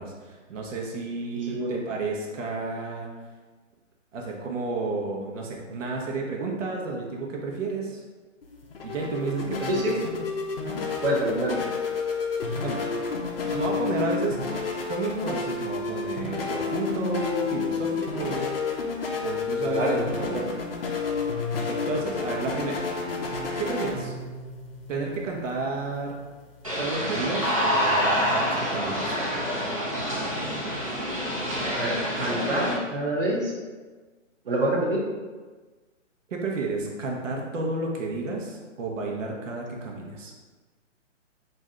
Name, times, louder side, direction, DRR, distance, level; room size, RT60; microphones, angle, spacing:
voice 1, 0.0-3.1 4.1-8.0 8.8-9.9 12.6-12.8 13.5-14.4 14.9-18.6 19.2-20.5 21.7-22.8 23.6-24.1 24.9-26.2 26.8-29.2 36.3-40.3, right 3 dB, 75° right, -1 dB, 0.9 m, -31 dB
voice 2, 1.3-1.8 9.7-9.9 11.0-11.7 19.6-20.5 31.7-33.5 34.5-35.0, right 1 dB, 45° right, -2 dB, 0.9 m, -27 dB
sound 1, 8.4-26.7, left 4 dB, 50° left, 0.5 m, -30 dB
sound 2, 26.6-32.7, equal, 30° right, 0.5 m, -27 dB
3.2 x 2.7 x 3.6 m, 1.3 s
hypercardioid pair, 175°, 38 cm